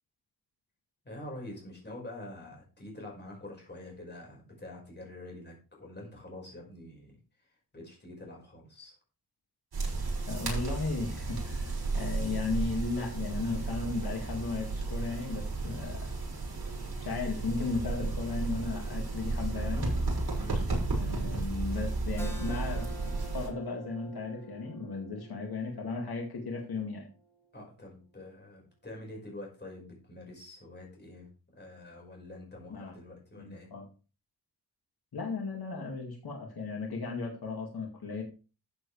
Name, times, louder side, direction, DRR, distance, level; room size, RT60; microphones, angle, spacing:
voice 1, 1.0-7.2 7.7-9.0 20.3-20.7 27.5-33.7, left 1 dB, 25° left, -1 dB, 5.2 m, -46 dB
sound 1, 9.7-23.5, right 3 dB, 70° right, 6.4 m, -33 dB
voice 2, 10.2-16.0 17.0-19.9 21.0-27.1 32.7-32.9 33.4-33.9 35.1-38.2, left 4 dB, 70° left, 0 dB, 2.3 m, -35 dB
Keyboard (musical), 22.2-27.4, right 4 dB, 5° left, 2.0 m, -48 dB
13.5 x 7.8 x 3.3 m, 0.35 s
wide cardioid pair, 150°, 39 cm